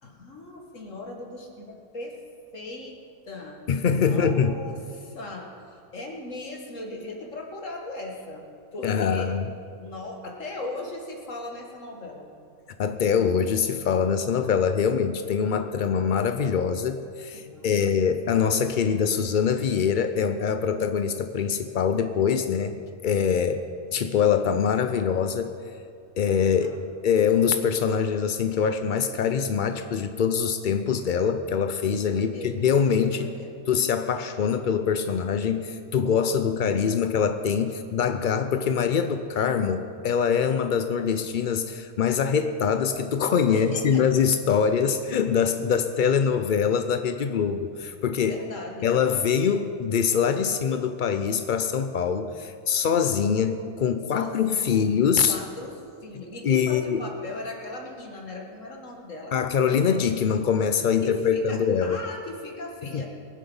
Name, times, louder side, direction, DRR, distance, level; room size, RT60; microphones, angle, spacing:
voice 1, 0.0-2.2 2.5-3.6 4.0-8.4 8.7-9.4 9.8-12.3 17.3-18.3 26.6-26.8 32.1-32.7 33.2-33.7 43.5-44.0 48.2-48.9 54.1-54.8 55.3-59.4 61.0-63.1, left 2 dB, 55° left, 1 dB, 2.1 m, -38 dB
voice 2, 3.7-4.5 8.8-9.5 12.8-23.6 23.9-25.5 26.2-26.7 27.0-33.3 33.7-48.4 48.8-55.4 56.4-57.0 59.3-62.0 62.9-63.0, left 7 dB, 75° left, 9 dB, 0.4 m, -24 dB
23.5 x 7.9 x 5.5 m, 2.4 s
omnidirectional pair, 1.6 m